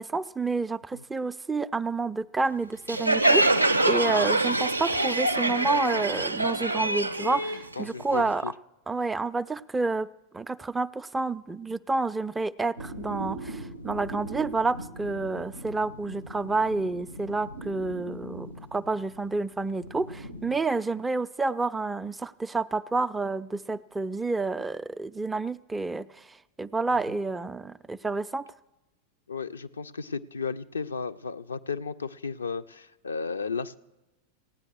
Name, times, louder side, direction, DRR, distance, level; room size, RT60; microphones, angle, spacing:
voice 1, 0.0-8.5 8.9-10.1 10.3-26.2 26.6-28.5, right 3 dB, 10° right, 14 dB, 0.4 m, -29 dB
Crowd, 2.9-8.3, right 2 dB, 85° right, 0.4 m, -25 dB
voice 2, 7.8-8.5 29.3-33.8, left 5 dB, 75° left, 9 dB, 0.5 m, -34 dB
sound 1, 12.8-20.6, right 1 dB, 90° left, 1.1 m, -41 dB
16.0 x 9.7 x 6.4 m, 1.0 s
figure-of-eight pair, 90°, 0 cm